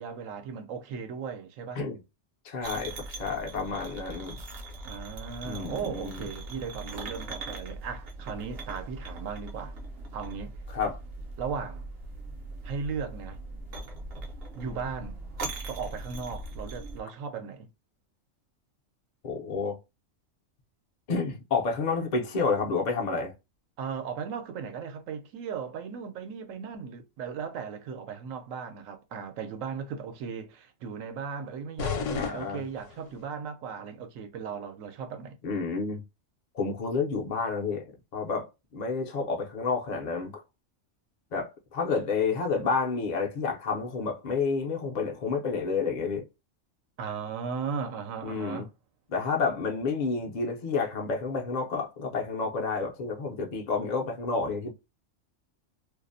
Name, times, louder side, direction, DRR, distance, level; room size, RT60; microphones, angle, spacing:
voice 1, 0.0-1.8 4.8-9.8 10.1-10.6 11.4-11.9 12.6-13.4 14.5-15.2 15.7-17.7 23.8-35.4 47.0-48.7, right 6 dB, 85° right, 1.0 m, -37 dB
voice 2, 2.4-4.4 5.4-6.2 10.7-11.0 19.2-19.8 21.1-23.3 32.2-32.6 35.4-36.0 36.5-37.8 38.1-38.5 38.7-40.3 41.3-46.2 48.2-48.6 49.1-54.7, left 4 dB, 55° left, 0.5 m, -30 dB
sound 1, 2.6-17.0, right 2 dB, 60° right, 0.7 m, -40 dB
sound 2, 31.8-33.3, left 6 dB, 75° left, 0.9 m, -34 dB
2.5 x 2.0 x 2.5 m
omnidirectional pair, 1.3 m